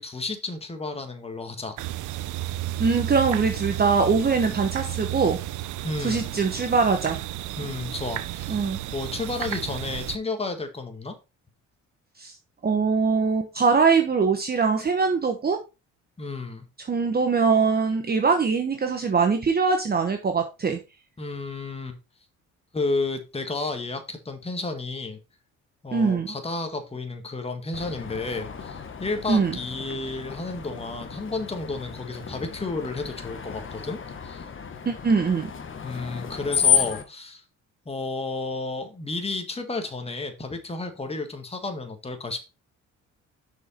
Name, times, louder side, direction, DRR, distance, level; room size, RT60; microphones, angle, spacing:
voice 1, 0.0-1.8 5.8-6.3 7.6-11.1 16.2-16.7 21.2-22.0 22.7-25.2 25.8-34.4 35.8-37.4 37.8-42.5, left 3 dB, 20° left, 6 dB, 1.6 m, -32 dB
sound 1, 1.8-10.2, right 14 dB, 80° right, 0.6 m, -32 dB
voice 2, 2.8-5.4 6.0-7.2 8.5-8.8 12.2-12.3 12.6-15.6 16.9-20.8 25.9-26.3 29.3-29.6 34.9-35.5, right 5 dB, 30° right, 5 dB, 1.0 m, -22 dB
Screech, 27.7-37.0, left 7 dB, 40° left, 1.2 m, -31 dB
6.3 x 5.2 x 4.3 m, 0.28 s
cardioid pair, 90°, 30 cm